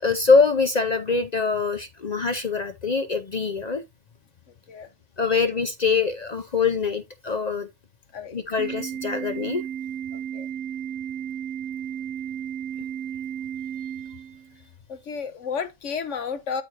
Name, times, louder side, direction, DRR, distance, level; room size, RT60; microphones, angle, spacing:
voice 1, 0.0-3.8 5.2-7.7 8.3-9.6, left 4 dB, 45° left, 0.5 m, -23 dB
Organ, 8.6-14.6, right 9 dB, 85° right, 1.3 m, -33 dB
voice 2, 10.1-10.5 14.9-16.6, left 6 dB, 60° left, 1.3 m, -32 dB
13.0 x 4.8 x 2.6 m
omnidirectional pair, 1.5 m